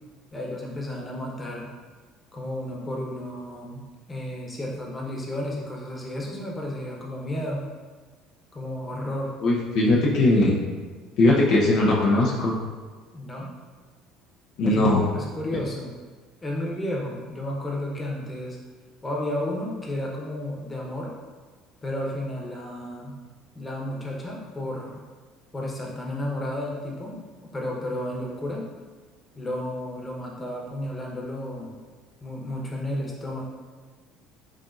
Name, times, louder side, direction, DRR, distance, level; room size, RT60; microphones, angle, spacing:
voice 1, 0.3-1.7 2.3-7.7 8.5-9.4 13.1-13.5 14.6-15.9 16.4-18.6 19.0-21.1 21.8-23.2 23.5-25.0 25.5-27.2 27.5-28.7 29.4-31.8 32.2-33.4, left 1 dB, 20° left, -2 dB, 1.0 m, -32 dB
voice 2, 9.4-10.6 11.2-12.6 14.6-15.1, left 2 dB, 60° left, -4 dB, 0.7 m, -20 dB
4.9 x 2.8 x 2.5 m, 1.4 s
hypercardioid pair, 65°, 0 cm